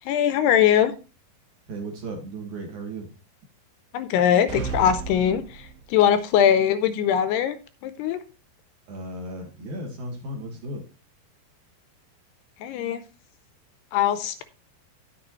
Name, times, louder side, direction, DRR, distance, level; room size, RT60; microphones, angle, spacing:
voice 1, 0.1-0.9 3.9-7.6 7.8-8.2 12.6-13.0 13.9-14.4, left 9 dB, 80° left, 11 dB, 2.5 m, -21 dB
voice 2, 1.7-3.1 8.9-10.8, right 1 dB, 55° right, 2 dB, 2.6 m, -35 dB
sound 1, 4.5-6.1, right 5 dB, 70° right, 2.5 m, -33 dB
10.5 x 8.6 x 3.0 m, 0.32 s
omnidirectional pair, 5.1 m